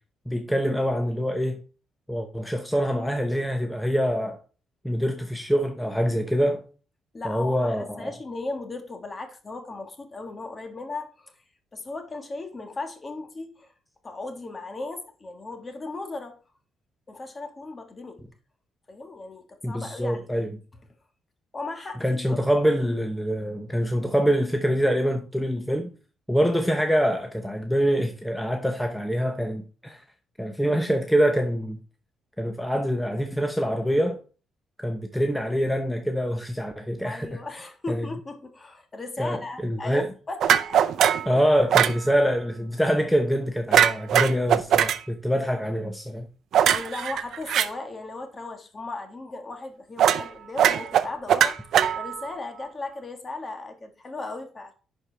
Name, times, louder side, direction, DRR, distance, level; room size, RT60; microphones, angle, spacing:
voice 1, 0.3-1.6 2.1-4.4 4.8-6.6 7.2-8.1 19.6-20.5 22.0-25.9 26.3-30.0 30.4-31.8 32.4-34.2 34.8-37.4 37.9-38.1 39.2-40.1 41.3-46.3, equal, 5° left, 0.8 m, -25 dB
voice 2, 7.1-11.4 11.7-13.7 14.0-16.4 17.1-18.2 18.9-20.3 21.5-22.4 37.0-40.9 41.3-41.4 46.6-54.7, left 3 dB, 30° left, 1.5 m, -36 dB
sound 1, 40.4-41.3 41.7-42.0 43.7-45.0 46.5-47.7 50.0-50.3 50.6-52.3, right 10 dB, 70° right, 0.5 m, -20 dB
10.5 x 4.6 x 3.3 m
cardioid pair, 90°, 0 cm